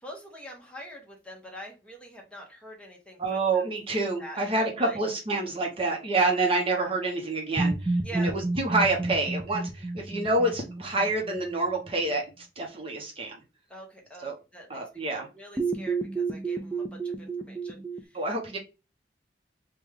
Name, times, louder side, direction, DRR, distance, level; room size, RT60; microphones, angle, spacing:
voice 1, 0.0-5.0 8.0-8.3 13.7-14.8 15.1-18.2, right 1 dB, 5° left, 0 dB, 0.8 m, -45 dB
voice 2, 3.2-13.4 14.2-14.3 14.7-15.3 18.1-18.6, right 2 dB, 30° right, 0 dB, 0.7 m, -28 dB
sound 1, 7.6-11.5 15.6-18.0, right 3 dB, 10° right, 0.3 m, -30 dB
3.4 x 2.2 x 3.3 m, 0.29 s
head